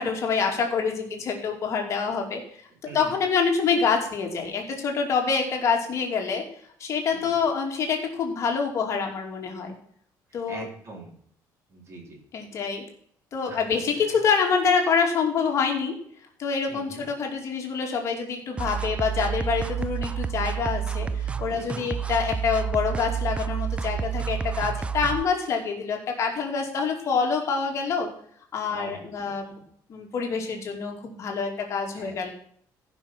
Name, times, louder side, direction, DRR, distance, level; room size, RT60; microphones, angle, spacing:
voice 1, 0.0-2.4 2.9-6.4 6.8-9.7 10.3-10.6 12.3-12.8 13.3-15.9 16.4-28.1 28.5-29.5 29.9-32.3, left 5 dB, 45° left, 2 dB, 2.6 m, -26 dB
voice 2, 10.5-11.1 11.7-12.2 13.5-13.6 16.7-17.0 21.5-21.9 28.7-29.3 32.0-32.3, right 2 dB, 40° right, 1 dB, 3.6 m, -42 dB
sound 1, 18.6-25.2, right 7 dB, 15° right, 0.4 m, -29 dB
15.0 x 5.9 x 5.9 m, 0.63 s
cardioid pair, 150°, 7 cm